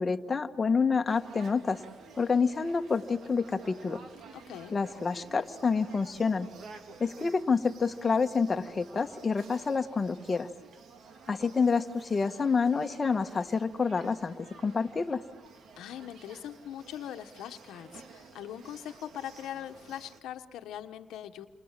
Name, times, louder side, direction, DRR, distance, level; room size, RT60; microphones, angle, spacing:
voice 1, 0.0-1.8 2.2-4.0 4.7-6.5 7.0-10.5 11.3-15.2, left 5 dB, 30° left, 6 dB, 1.4 m, -28 dB
sound 1, 1.1-20.2, right 4 dB, 65° right, 2.8 m, -52 dB
voice 2, 4.3-4.7 15.8-21.5, left 10 dB, 85° left, 8 dB, 1.2 m, -41 dB
29.5 x 26.5 x 7.5 m, 1.5 s
cardioid pair, 90°, 0 cm